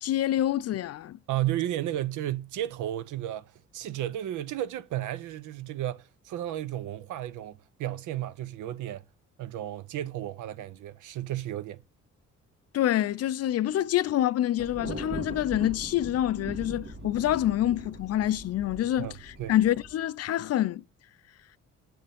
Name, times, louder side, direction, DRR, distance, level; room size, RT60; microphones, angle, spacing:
voice 1, 0.0-1.2 12.7-20.8, left 12 dB, 55° left, 0.5 m, -27 dB
voice 2, 1.3-9.0 9.4-11.8 19.0-19.5, right 13 dB, 80° right, 0.7 m, -33 dB
Thunder, 14.6-19.9, right 1 dB, 60° right, 2.1 m, -40 dB
7.7 x 6.6 x 3.5 m
cardioid pair, 90°, 30 cm